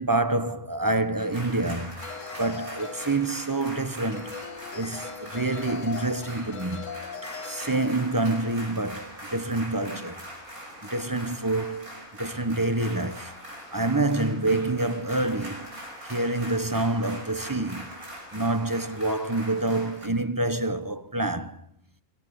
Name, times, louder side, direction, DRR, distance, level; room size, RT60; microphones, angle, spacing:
voice 1, 0.0-2.1 2.4-4.4 4.7-6.9 7.4-10.2 10.9-11.9 12.2-13.3 13.7-17.9 18.3-21.6, right 2 dB, 15° right, 0.9 m, -27 dB
sound 1, 1.2-20.1, equal, 75° right, 6.8 m, -42 dB
sound 2, 2.0-3.7 4.1-8.1, left 6 dB, 60° left, 1.8 m, -40 dB
26.0 x 16.0 x 9.8 m
omnidirectional pair, 1.5 m